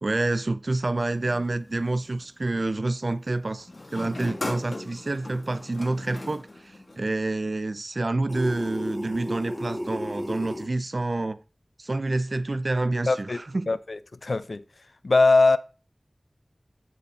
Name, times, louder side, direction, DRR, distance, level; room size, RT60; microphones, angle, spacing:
voice 1, 0.0-11.4 11.8-13.7, right 2 dB, 65° right, 0.4 m, -28 dB
sound 1, 1.0-2.3 3.7-7.2, left 2 dB, 65° left, 1.8 m, -38 dB
sound 2, 8.3-10.7, equal, 10° left, 1.9 m, -33 dB
voice 2, 13.1-13.4 13.7-14.6 15.0-15.6, left 3 dB, 85° left, 0.5 m, -21 dB
10.5 x 4.3 x 4.2 m
wide cardioid pair, 45°, 0 cm